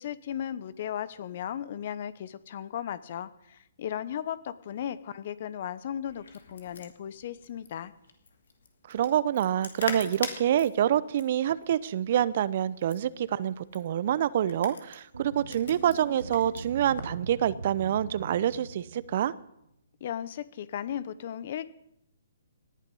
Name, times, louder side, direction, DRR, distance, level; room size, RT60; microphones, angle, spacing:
voice 1, 0.0-6.2 6.5-7.9 20.0-21.7, left 10 dB, 50° left, 17 dB, 0.9 m, -36 dB
sound 1, 6.1-17.2, left 5 dB, 70° left, 2.4 m, -43 dB
voice 2, 8.9-19.3, right 10 dB, 50° right, 18 dB, 0.7 m, -27 dB
sound 2, 15.1-19.4, right 4 dB, 75° right, 1.5 m, -42 dB
18.5 x 11.0 x 5.5 m, 0.81 s
figure-of-eight pair, 130°, 0 cm